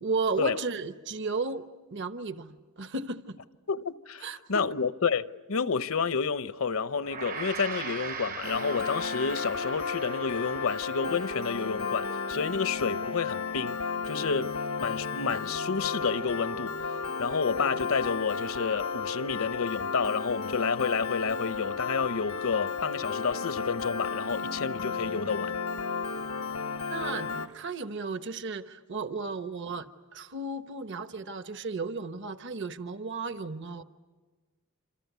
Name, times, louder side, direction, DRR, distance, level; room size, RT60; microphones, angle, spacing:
voice 1, 0.0-3.4 4.2-4.6 26.9-33.8, right 4 dB, 55° right, 1.0 m, -34 dB
voice 2, 3.7-13.8 14.1-16.8 17.2-25.5, left 5 dB, 70° left, 0.8 m, -30 dB
Gong, 7.0-16.4, right 5 dB, 40° right, 0.8 m, -42 dB
Piano, 8.4-27.5, left 5 dB, 85° left, 1.1 m, -33 dB
sound 1, 20.9-27.7, right 3 dB, 75° right, 5.6 m, -59 dB
27.5 x 26.5 x 8.2 m
head